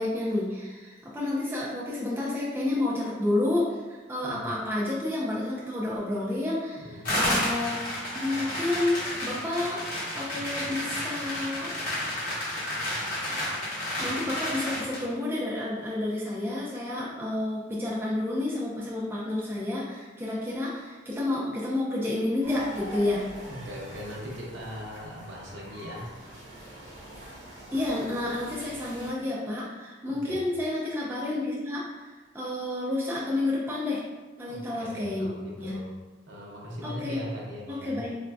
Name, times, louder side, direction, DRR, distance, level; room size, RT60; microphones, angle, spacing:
voice 1, 0.0-7.8 8.1-9.8 10.2-11.8 14.0-23.2 27.7-34.0 34.4-35.3 35.6-35.8 36.8-37.2 37.7-38.2, left 2 dB, 10° right, -6 dB, 0.4 m, -30 dB
sound 1, 7.1-15.1, left 1 dB, 45° left, 0.9 m, -31 dB
sound 2, 22.4-29.1, right 1 dB, 40° right, 0.8 m, -44 dB
voice 2, 23.5-26.1 30.2-30.4 34.5-35.9 36.3-38.0, equal, 65° right, -3 dB, 0.8 m, -40 dB
4.2 x 2.5 x 2.2 m, 1.3 s
head